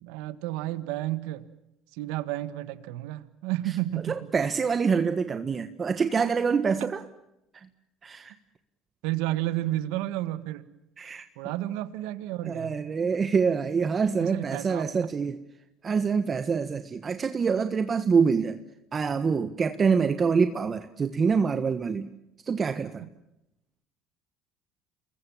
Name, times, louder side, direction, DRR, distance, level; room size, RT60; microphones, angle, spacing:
voice 1, 0.0-1.5 2.0-4.3 9.0-10.7 11.4-12.8 14.2-14.9 23.0-23.1, right 15 dB, 85° right, 14 dB, 1.6 m, -31 dB
voice 2, 4.1-7.0 7.5-7.6 8.0-8.3 11.0-11.3 12.4-15.4 15.8-18.6 18.9-22.1 22.5-23.0, right 5 dB, 30° right, 10 dB, 1.4 m, -25 dB
28.0 x 21.5 x 7.4 m, 0.87 s
supercardioid pair, 100°, 0 cm